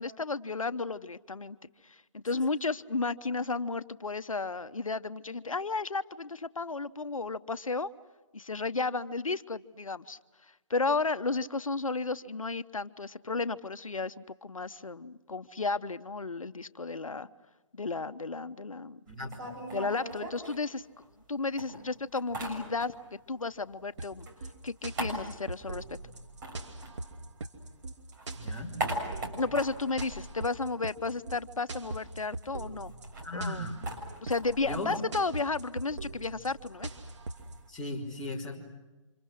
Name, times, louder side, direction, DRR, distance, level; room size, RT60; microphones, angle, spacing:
voice 1, 0.0-1.6 1.8-7.9 8.3-10.2 10.7-17.3 17.7-19.0 19.7-20.8 21.3-22.9 23.3-24.3 24.6-25.8 29.4-32.9 33.3-33.6 34.2-36.9, left 3 dB, 85° left, 14 dB, 1.0 m, -33 dB
voice 2, 19.1-19.5 28.3-28.8 33.2-33.8 34.6-34.9 37.7-38.6, left 1 dB, 5° left, -8 dB, 3.9 m, -37 dB
sound 1, 19.1-21.3 21.6-23.2 23.5-27.6 28.0-31.3 31.5-31.6 31.9-37.7, right 1 dB, 40° right, 6.9 m, -41 dB
sound 2, 24.0-37.6, right 2 dB, 60° right, 2.7 m, -41 dB
29.5 x 26.5 x 6.4 m, 1.1 s
figure-of-eight pair, 145°, 17 cm